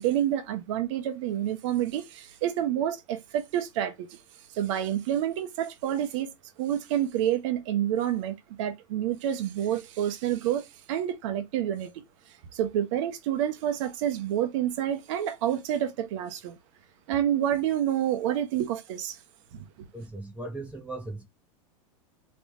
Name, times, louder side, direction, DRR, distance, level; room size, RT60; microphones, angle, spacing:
voice 1, 0.0-4.2 4.5-6.3 6.6-12.0 12.5-16.6 17.1-19.2 19.5-19.6, right 11 dB, 60° right, 1.0 m, -28 dB
voice 2, 19.9-21.2, right 2 dB, 5° right, 0.9 m, -38 dB
3.4 x 3.2 x 2.7 m
supercardioid pair, 135°, 18 cm